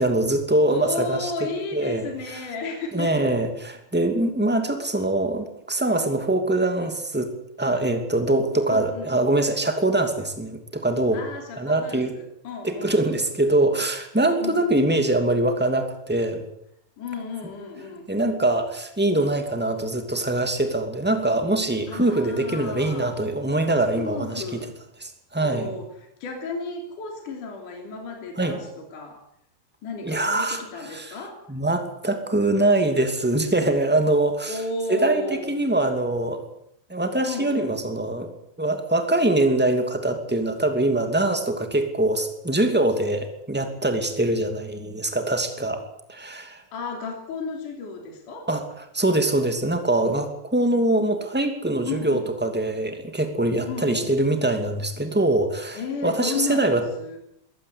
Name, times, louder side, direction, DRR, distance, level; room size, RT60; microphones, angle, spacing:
voice 1, 0.0-1.3 1.7-2.4 2.9-7.3 7.6-11.2 11.6-12.1 12.6-16.4 18.1-24.6 25.0-25.7 28.4-28.5 30.0-30.6 30.9-31.2 31.5-34.6 34.9-36.4 36.9-38.3 38.6-45.8 46.1-46.6 48.5-48.6 48.9-56.8, right 2 dB, 5° right, 6 dB, 1.1 m, -23 dB
voice 2, 0.7-3.4 8.7-9.1 11.1-13.0 14.4-14.7 17.0-18.1 21.9-23.2 23.8-24.8 25.4-29.2 29.8-31.4 34.4-35.5 37.2-37.8 46.7-48.5 51.9-52.3 53.6-54.1 55.7-57.2, left 3 dB, 45° left, 3 dB, 4.3 m, -33 dB
22.0 x 18.5 x 8.3 m, 0.73 s
omnidirectional pair, 5.3 m